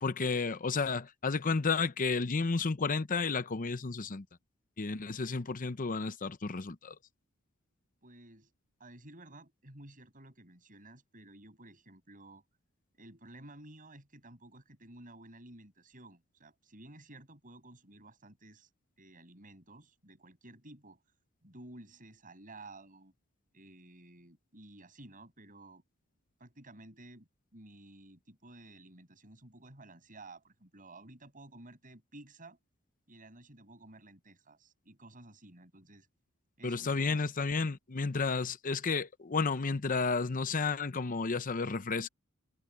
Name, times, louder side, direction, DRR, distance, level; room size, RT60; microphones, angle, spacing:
voice 1, 0.0-4.2 4.8-7.0 36.6-42.1, left 4 dB, 40° left, 0.8 m, -32 dB
voice 2, 8.0-8.5 8.8-12.4 12.9-18.7 19.0-21.1 21.4-23.1 23.5-25.8 26.4-32.6 33.1-36.1 36.6-37.2, right 2 dB, 40° right, 7.0 m, -53 dB
head